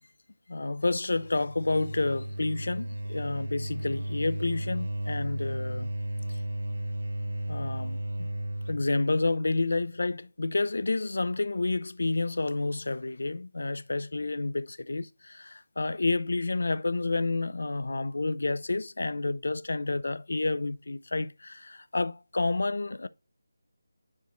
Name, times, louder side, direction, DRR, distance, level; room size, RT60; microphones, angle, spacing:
voice 1, 0.5-5.9 7.5-8.3 8.7-23.1, left 3 dB, 70° left, 0.5 m, -29 dB
sound 1, 1.1-8.9, right 1 dB, 80° right, 2.2 m, -34 dB
9.7 x 4.6 x 3.0 m
figure-of-eight pair, 175°, 0 cm